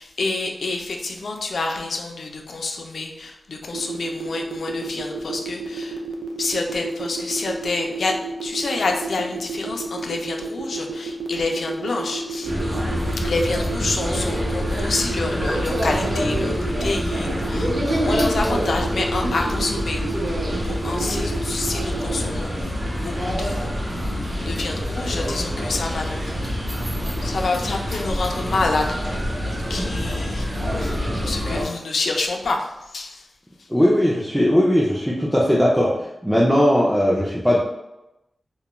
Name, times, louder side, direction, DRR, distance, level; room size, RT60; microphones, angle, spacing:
voice 1, 0.0-6.0 6.4-12.5 13.2-20.0 20.5-26.6 27.2-29.2 29.7-33.3, left 3 dB, 80° left, 2 dB, 0.3 m, -28 dB
sound 1, 3.7-22.2, right 6 dB, 80° right, 0.4 m, -31 dB
sound 2, 12.4-31.6, equal, 35° right, 0.7 m, -26 dB
voice 2, 33.7-37.6, equal, ahead, -5 dB, 0.3 m, -18 dB
2.3 x 2.1 x 2.9 m, 0.91 s
wide cardioid pair, 115°, 0 cm